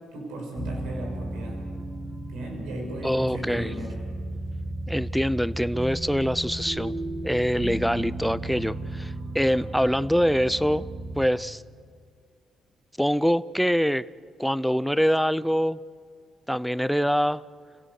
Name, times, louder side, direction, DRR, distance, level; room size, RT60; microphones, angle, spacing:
voice 1, 0.1-1.6 2.3-4.0 9.6-9.7, right 1 dB, 90° right, 1 dB, 6.0 m, -36 dB
sound 1, 0.6-11.3, right 1 dB, 55° right, 5.3 m, -34 dB
voice 2, 3.0-3.7 4.9-7.0 7.2-10.9 11.2-11.6 13.0-14.1 14.4-15.8 16.5-17.4, equal, ahead, 17 dB, 0.6 m, -24 dB
30.0 x 17.0 x 6.6 m, 2.2 s
cardioid pair, 90°, 0 cm